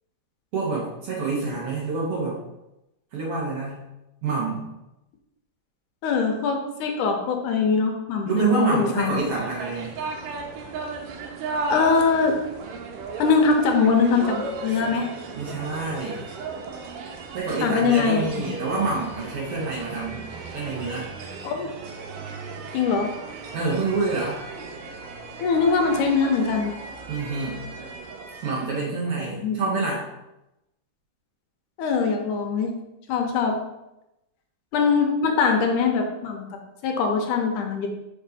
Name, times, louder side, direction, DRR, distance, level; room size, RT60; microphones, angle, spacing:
voice 1, 0.5-2.4 3.1-3.8 4.2-4.7 8.3-10.0 15.3-16.3 17.3-20.2 20.5-21.3 23.5-24.4 27.1-27.6 28.4-30.1, right 3 dB, 55° right, -3 dB, 1.9 m, -27 dB
voice 2, 6.0-9.1 11.7-12.4 13.2-15.1 17.6-18.3 21.4-21.7 22.7-23.1 25.4-26.7 29.2-29.6 31.8-32.7 33.1-33.6 34.7-36.5 36.8-37.9, left 5 dB, 75° left, 3 dB, 2.3 m, -22 dB
sound 1, 9.0-28.8, right 3 dB, 90° right, 2.4 m, -36 dB
5.4 x 5.3 x 4.1 m, 0.91 s
omnidirectional pair, 3.7 m